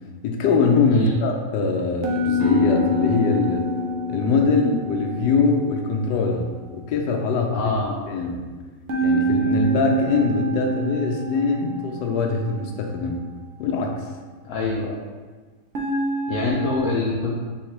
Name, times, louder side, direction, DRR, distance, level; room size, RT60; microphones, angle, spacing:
voice 1, 0.2-3.7 4.1-6.5 6.7-7.7 8.1-8.4 9.0-13.2 13.6-14.0, left 4 dB, 90° left, 2 dB, 1.2 m, -22 dB
sound 1, 2.0-6.2 8.9-13.0 15.7-16.8, right 1 dB, 65° right, 0.7 m, -27 dB
sound 2, 2.4-7.8, left 2 dB, 25° left, 0.4 m, -31 dB
voice 2, 7.5-8.0 14.4-15.0 16.3-17.3, left 3 dB, 70° left, -3 dB, 0.9 m, -25 dB
3.9 x 3.6 x 3.1 m, 1.4 s
omnidirectional pair, 1.8 m